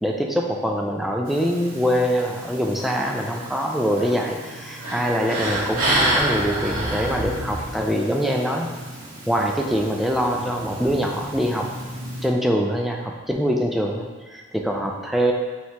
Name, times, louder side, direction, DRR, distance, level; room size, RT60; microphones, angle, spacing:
voice 1, 0.0-8.7 9.3-11.7 12.2-15.3, equal, ahead, 0 dB, 0.3 m, -24 dB
sound 1, 1.3-12.3, right 1 dB, 90° right, 1.0 m, -30 dB
4.5 x 2.9 x 3.3 m, 1.3 s
head